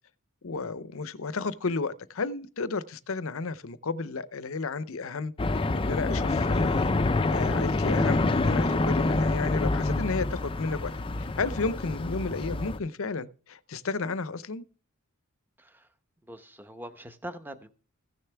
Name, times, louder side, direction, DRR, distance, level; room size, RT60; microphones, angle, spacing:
voice 1, 0.4-6.9 7.3-10.9 11.2-14.6, left 4 dB, 65° left, 0.6 m, -33 dB
sound 1, 5.4-12.8, left 2 dB, 25° left, 0.4 m, -26 dB
voice 2, 15.6-15.9 16.2-17.7, equal, 10° right, 0.9 m, -43 dB
15.5 x 6.8 x 3.4 m
head